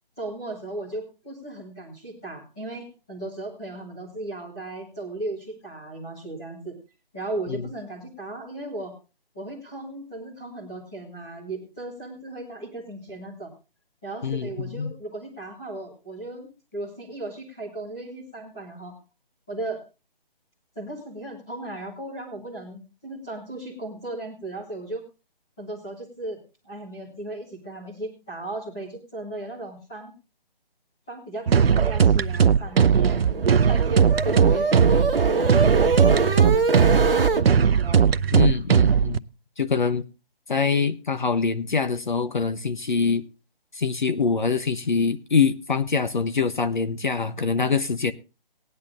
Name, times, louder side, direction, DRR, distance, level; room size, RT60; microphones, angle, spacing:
voice 1, 0.2-6.7 7.1-8.9 9.3-13.5 14.0-18.9 19.5-19.8 20.7-25.0 25.6-26.4 26.6-30.1 31.1-38.1, right 2 dB, 5° left, 1.0 m, -36 dB
voice 2, 14.2-14.9 38.3-39.2 39.6-40.0 40.5-43.2 43.7-48.1, left 5 dB, 55° left, 0.8 m, -24 dB
sound 1, 31.5-39.2, right 7 dB, 85° right, 0.6 m, -18 dB
sound 2, 32.7-37.4, right 4 dB, 70° right, 1.3 m, -24 dB
19.0 x 10.5 x 2.5 m
hypercardioid pair, 180°, 29 cm